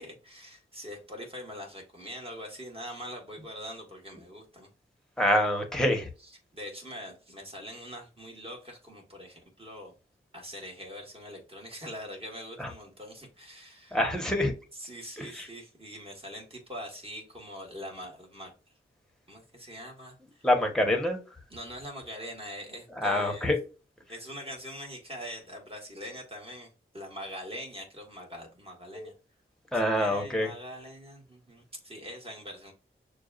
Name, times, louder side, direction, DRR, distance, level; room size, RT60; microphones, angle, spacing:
voice 1, 0.0-4.7 6.2-9.9 10.3-14.0 14.7-18.5 19.3-20.5 21.5-23.5 24.1-29.1 29.7-32.7, equal, 25° right, 0 dB, 1.8 m, -43 dB
voice 2, 5.2-6.1 12.6-12.7 13.9-14.5 15.2-15.5 20.4-21.2 23.0-23.6 28.9-29.1 29.7-30.5, left 1 dB, 5° left, 3 dB, 1.3 m, -26 dB
6.4 x 2.4 x 2.5 m, 0.32 s
cardioid pair, 55°, 21 cm